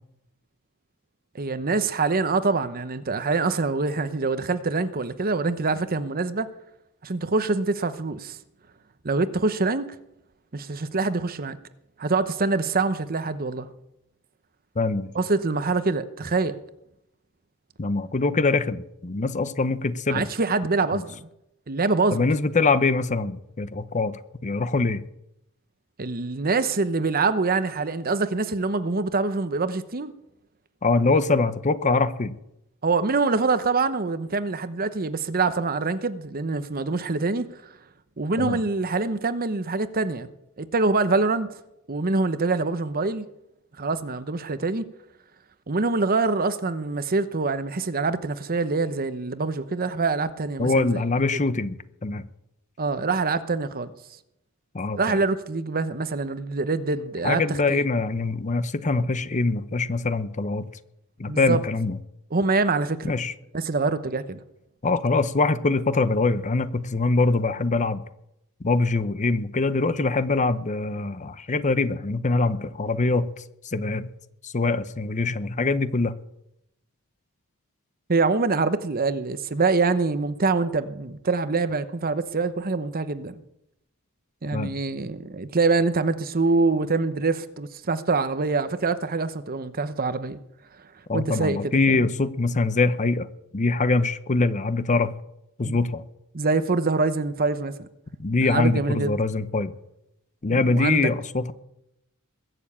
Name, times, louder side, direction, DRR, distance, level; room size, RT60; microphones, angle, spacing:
voice 1, 1.3-6.5 7.0-8.4 9.0-10.0 10.5-11.6 12.0-13.7 15.1-16.5 20.1-21.2 21.7-22.2 26.0-30.1 32.8-37.5 38.2-40.3 40.6-41.5 41.9-43.2 43.8-44.9 45.7-51.0 52.8-53.9 55.0-57.8 61.3-61.6 62.3-63.1 63.5-64.4 78.1-83.4 84.4-90.4 91.1-92.1 95.6-95.8 96.3-97.9 98.4-99.2 100.5-101.1, right 3 dB, 40° right, 0.9 m, -25 dB
voice 2, 14.8-15.1 17.8-20.3 20.9-21.0 22.1-25.0 30.8-32.3 38.4-38.6 50.6-51.8 52.0-52.2 54.7-55.2 57.2-60.7 61.2-62.0 63.0-63.3 64.8-68.0 68.6-73.3 73.6-74.1 74.4-76.1 84.5-84.7 91.1-93.3 93.5-95.1 95.6-96.0 98.2-99.7 100.4-101.5, left 3 dB, 35° left, 0.7 m, -23 dB
21.5 x 7.1 x 8.5 m
head